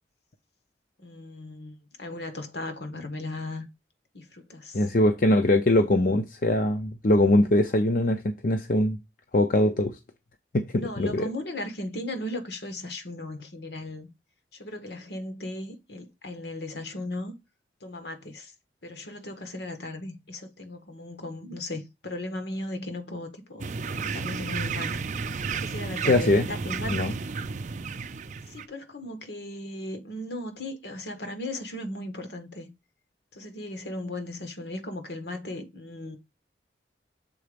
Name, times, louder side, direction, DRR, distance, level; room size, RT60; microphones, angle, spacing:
voice 1, 1.0-3.7 4.1-4.9 10.7-14.1 14.5-17.3 17.8-18.5 18.8-25.2 25.5-27.0 28.5-32.7 33.3-36.2, left 1 dB, 70° left, 1.5 m, -37 dB
voice 2, 4.7-9.0 9.3-10.0 10.5-11.3 26.0-26.5 26.9-27.1, left 1 dB, 50° left, 0.6 m, -22 dB
sound 1, 23.6-28.7, right 5 dB, 45° right, 0.5 m, -32 dB
7.1 x 4.0 x 5.1 m
head